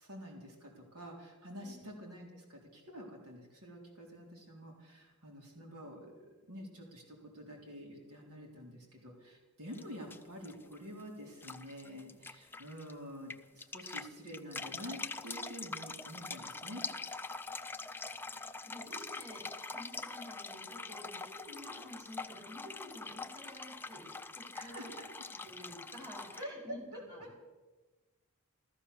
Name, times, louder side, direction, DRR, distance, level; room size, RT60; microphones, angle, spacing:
voice 1, 0.0-16.8 24.5-25.1 26.4-27.4, equal, 85° right, -1 dB, 3.7 m, -48 dB
sound 1, 9.7-9.8 10.1-11.0 11.4-12.9 13.3-26.4, left 3 dB, 10° left, 0.5 m, -44 dB
voice 2, 18.6-24.9 25.4-27.4, left 1 dB, 20° right, -2 dB, 5.2 m, -51 dB
14.5 x 14.0 x 6.7 m, 1.2 s
head